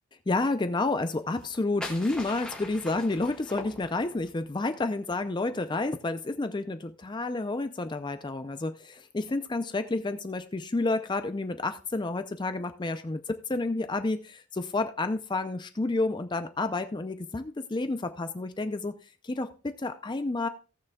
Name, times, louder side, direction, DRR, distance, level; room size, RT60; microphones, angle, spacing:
voice 1, 0.3-19.0 19.2-20.5, left 2 dB, 20° left, 9 dB, 0.4 m, -30 dB
sound 1, 1.3-4.3, left 1 dB, 5° left, 1.8 m, -41 dB
18.0 x 6.5 x 2.2 m, 0.37 s
head